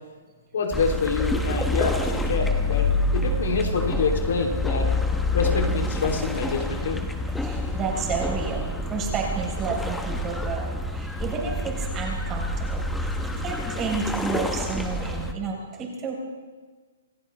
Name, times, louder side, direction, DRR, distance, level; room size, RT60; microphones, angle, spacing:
voice 1, 0.5-4.9 5.3-7.0, left 4 dB, 70° left, 2 dB, 3.0 m, -26 dB
sound 1, 0.7-15.3, left 2 dB, 5° left, 1.1 m, -27 dB
voice 2, 7.4-8.6 8.9-16.1, right 5 dB, 20° right, -1 dB, 4.4 m, -31 dB
27.5 x 15.0 x 3.4 m, 1.4 s
hypercardioid pair, 160°, 0 cm